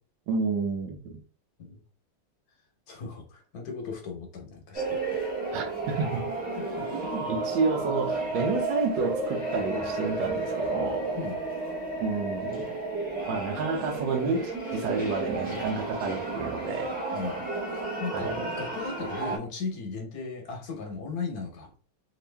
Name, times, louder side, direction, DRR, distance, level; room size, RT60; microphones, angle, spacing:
voice 1, 0.3-1.2 5.5-6.3 6.9-11.1 12.0-12.7 13.3-16.9 18.1-18.4, right 4 dB, 70° right, 1.4 m, -30 dB
voice 2, 2.9-5.2 6.6-7.1 11.2-11.4 17.1-18.3 18.6-21.7, left 4 dB, 55° left, 1.3 m, -37 dB
sound 1, 4.7-19.4, right 3 dB, 5° right, 0.6 m, -32 dB
3.5 x 2.8 x 3.3 m
omnidirectional pair, 2.2 m